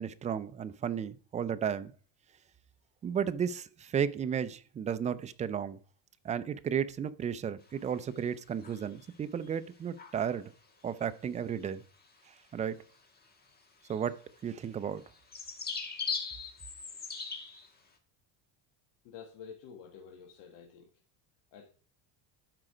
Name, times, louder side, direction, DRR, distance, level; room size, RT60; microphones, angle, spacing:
voice 1, 0.0-1.9 3.0-5.8 6.2-10.5 10.8-11.8 12.5-12.8 13.9-15.0, right 8 dB, 20° right, 0.3 m, -33 dB
sound 1, 7.7-8.2 8.6-9.2 9.4-9.5 10.0-10.4 11.4-11.7 11.9-12.1 12.8-13.0 13.3-13.4 13.8-17.7, left 5 dB, 20° left, 1.5 m, -40 dB
voice 2, 19.0-20.9 21.5-21.7, left 7 dB, 65° left, 1.8 m, -49 dB
12.0 x 5.0 x 4.9 m
cardioid pair, 140°, 43 cm